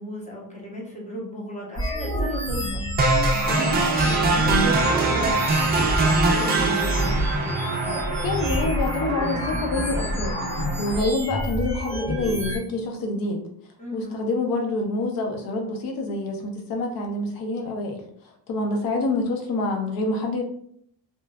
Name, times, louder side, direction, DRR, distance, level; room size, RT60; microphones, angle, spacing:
voice 1, 0.0-2.8 3.4-7.0 13.8-14.2, equal, 20° left, -3 dB, 0.7 m, -35 dB
sound 1, 1.8-12.6, equal, 80° left, 1.4 m, -28 dB
sound 2, 3.0-11.0, right 3 dB, 25° right, 0.4 m, -24 dB
voice 2, 8.2-10.3 10.8-13.4 13.9-18.0 18.5-20.4, left 2 dB, 60° left, 3 dB, 0.7 m, -26 dB
3.0 x 2.3 x 2.2 m, 0.64 s
cardioid pair, 155°, 39 cm